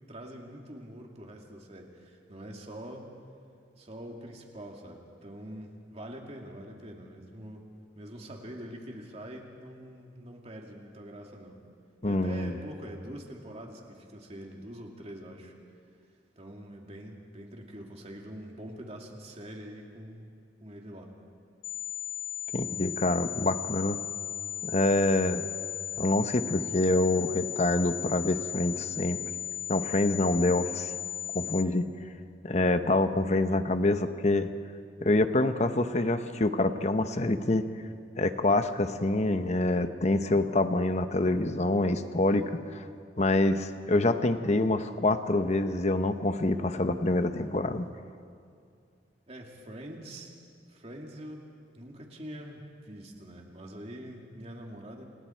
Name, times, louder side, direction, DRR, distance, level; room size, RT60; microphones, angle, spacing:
voice 1, 0.1-3.1 3.8-7.6 7.9-11.6 12.1-15.5 16.4-20.3 20.6-21.1 49.3-50.3 50.7-51.5 51.7-55.1, equal, 35° right, 1 dB, 2.8 m, -44 dB
voice 2, 12.0-12.5 22.5-24.0 24.6-25.4 26.0-29.2 29.7-30.9 31.3-31.8 32.4-34.5 35.0-37.6 38.2-42.8 43.2-47.9, left 2 dB, 40° left, 9 dB, 1.0 m, -26 dB
sound 1, 21.6-31.6, left 11 dB, 90° left, 0.6 m, -36 dB
29.0 x 28.0 x 4.6 m, 2.4 s
head